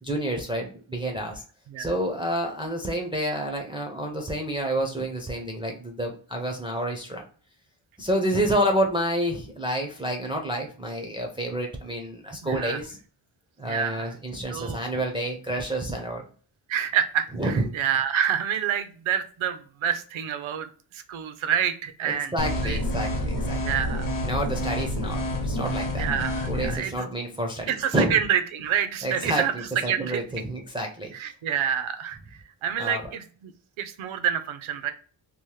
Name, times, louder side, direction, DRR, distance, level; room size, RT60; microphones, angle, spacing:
voice 1, 0.0-1.4 1.8-7.2 8.0-13.0 13.6-16.2 17.4-17.7 22.0-23.6 24.2-26.1 26.5-28.2 29.0-29.4 29.8-31.1 32.8-33.0, right 1 dB, 10° right, 1 dB, 0.4 m, -29 dB
voice 2, 12.4-12.8 13.6-14.1 14.5-14.8 16.7-20.7 20.9-22.3 22.6-22.8 23.6-24.1 25.9-27.1 27.7-30.2 31.1-32.2 32.6-33.5 33.8-34.9, right 9 dB, 75° right, 10 dB, 0.6 m, -27 dB
sound 1, 22.4-26.8, left 1 dB, 40° left, 0.8 m, -28 dB
2.9 x 2.0 x 3.1 m, 0.41 s
wide cardioid pair, 120°, 49 cm